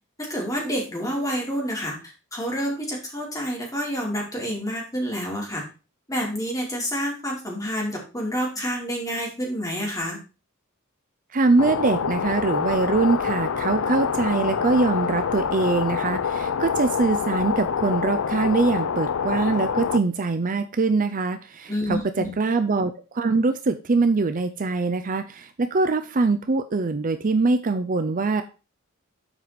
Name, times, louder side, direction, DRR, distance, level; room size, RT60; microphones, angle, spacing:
voice 1, 0.2-2.0 2.3-5.6 6.1-10.2 21.7-22.3, equal, 15° left, -2 dB, 3.0 m, -28 dB
voice 2, 11.3-28.4, right 3 dB, 40° right, 9 dB, 0.5 m, -23 dB
sound 1, 11.6-20.0, left 6 dB, 70° left, 0.5 m, -26 dB
7.4 x 4.8 x 5.1 m, 0.32 s
head